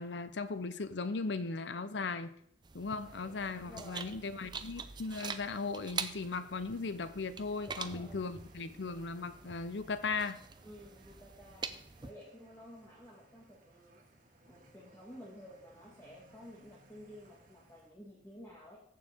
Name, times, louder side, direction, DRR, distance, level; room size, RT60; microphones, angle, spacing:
voice 1, 0.0-2.4 2.7-10.4, left 4 dB, 70° left, 13 dB, 0.6 m, -37 dB
sound 1, 2.6-12.1, right 5 dB, 25° right, 0.4 m, -45 dB
sound 2, 3.0-17.9, right 2 dB, 45° right, 1.9 m, -63 dB
voice 2, 3.7-4.1 7.7-8.2 10.6-14.0 14.4-18.8, equal, 15° left, -5 dB, 1.7 m, -52 dB
14.5 x 6.9 x 3.5 m, 0.70 s
head